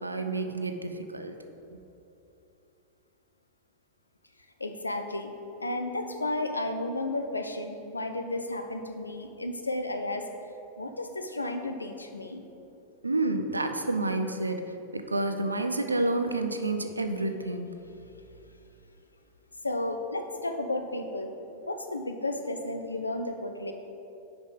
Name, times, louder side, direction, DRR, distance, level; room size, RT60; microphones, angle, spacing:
voice 1, 0.0-1.3 1.7-1.8 13.0-17.7, right 2 dB, 80° right, 7 dB, 0.4 m, -29 dB
voice 2, 4.6-5.3 5.6-10.3 10.8-12.4 19.6-21.3 21.7-23.7, left 2 dB, 80° left, 6 dB, 0.5 m, -33 dB
5.4 x 4.9 x 5.2 m, 2.8 s
figure-of-eight pair, 90°, 0 cm